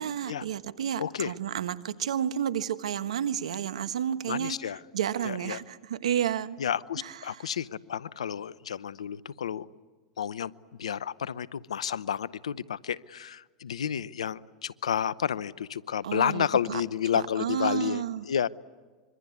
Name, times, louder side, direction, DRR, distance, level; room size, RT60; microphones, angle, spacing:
voice 1, 0.0-4.6 4.9-6.6 7.0-7.4 16.0-16.8 17.1-18.2, right 9 dB, 80° right, 1.2 m, -31 dB
voice 2, 1.0-1.3 4.3-4.8 5.2-5.6 6.6-9.7 10.2-10.5 10.8-18.5, left 8 dB, 85° left, 0.8 m, -31 dB
26.0 x 23.5 x 9.5 m
hypercardioid pair, 95°, 3 cm